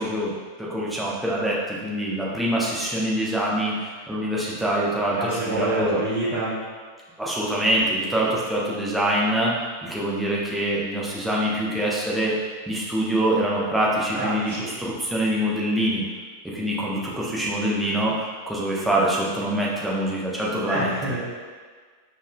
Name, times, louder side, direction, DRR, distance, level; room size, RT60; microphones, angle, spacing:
voice 1, 0.0-6.0 7.2-9.5 9.8-12.4 12.7-16.0 16.5-20.9, right 1 dB, 5° right, -6 dB, 0.8 m, -25 dB
voice 2, 5.2-6.6 14.1-14.6 20.6-21.2, right 2 dB, 40° right, -10 dB, 0.9 m, -27 dB
5.1 x 2.5 x 2.3 m, 1.5 s
figure-of-eight pair, 90°, 0 cm